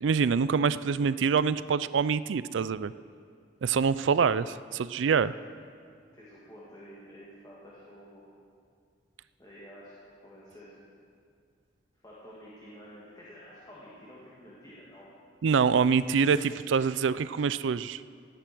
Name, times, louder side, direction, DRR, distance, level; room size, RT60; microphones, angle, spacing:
voice 1, 0.0-2.9 3.6-5.3 15.4-18.0, right 6 dB, 80° right, 16 dB, 0.4 m, -25 dB
voice 2, 6.1-8.2 9.4-9.9 10.2-10.9 11.9-15.1, equal, 20° left, -8 dB, 2.4 m, -50 dB
17.5 x 10.0 x 6.2 m, 2.2 s
head